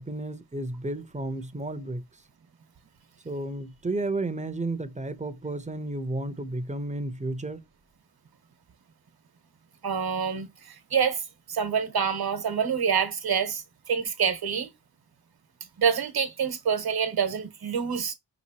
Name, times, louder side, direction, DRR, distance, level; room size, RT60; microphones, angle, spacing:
voice 1, 0.0-2.0 3.2-7.6, right 2 dB, 15° right, 0.7 m, -32 dB
voice 2, 9.8-11.2 11.5-14.7 15.8-18.1, right 7 dB, 60° right, 1.2 m, -27 dB
5.3 x 3.0 x 2.8 m
cardioid pair, 75°, 42 cm